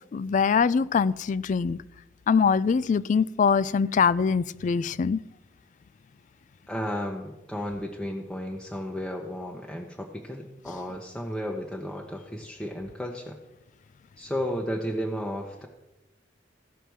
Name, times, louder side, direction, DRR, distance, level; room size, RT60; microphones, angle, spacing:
voice 1, 0.1-1.8 2.3-5.2, left 5 dB, 45° left, 0.3 m, -23 dB
voice 2, 6.7-13.4 14.2-15.7, equal, 5° left, 0.8 m, -33 dB
15.5 x 5.8 x 4.6 m
head